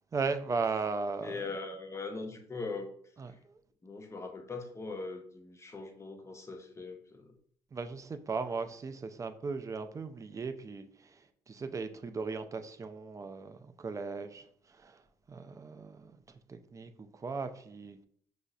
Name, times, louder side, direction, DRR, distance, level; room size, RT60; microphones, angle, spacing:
voice 1, 0.1-1.5 3.2-3.6 7.7-15.0 15.3-16.2 16.5-18.0, right 4 dB, 30° right, 0.4 m, -37 dB
voice 2, 1.2-2.9 3.8-7.3, left 3 dB, 25° left, 0.7 m, -41 dB
5.1 x 2.0 x 2.4 m
supercardioid pair, 65°, 11 cm